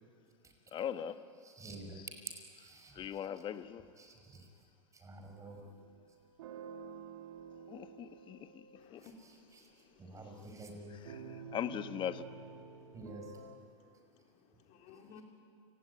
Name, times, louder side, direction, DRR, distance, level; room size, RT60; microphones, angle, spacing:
voice 1, 0.7-1.2 1.9-2.1 2.9-3.8 7.7-8.6 8.9-9.0 10.9-12.2, left 9 dB, 30° left, 1.3 m, -40 dB
voice 2, 1.4-2.0 2.5-3.1 4.0-4.5 4.9-5.6 9.2-9.7 10.0-11.0 12.9-13.3 13.8-13.9, right 2 dB, 20° right, 5.8 m, -50 dB
sound 1, 5.5-8.9 11.0-13.6, right 5 dB, 70° right, 2.3 m, -50 dB
voice 3, 8.7-10.8 11.2-11.5 12.6-13.0 13.6-15.2, left 5 dB, 50° left, 4.1 m, -61 dB
29.0 x 18.5 x 9.6 m
hypercardioid pair, 105°, 16 cm